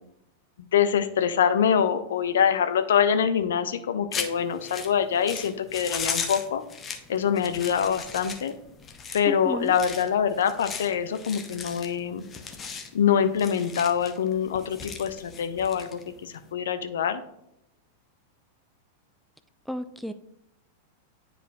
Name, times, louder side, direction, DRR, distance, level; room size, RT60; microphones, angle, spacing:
voice 1, 0.6-6.6 7.1-8.5 9.1-12.2 12.9-17.2, left 8 dB, 60° left, 10 dB, 0.5 m, -25 dB
sound 1, 4.1-16.5, left 5 dB, 20° left, 0.7 m, -37 dB
voice 2, 9.3-9.7 19.7-20.1, equal, ahead, 10 dB, 0.3 m, -32 dB
9.9 x 4.5 x 2.4 m, 0.80 s
figure-of-eight pair, 90°, 0 cm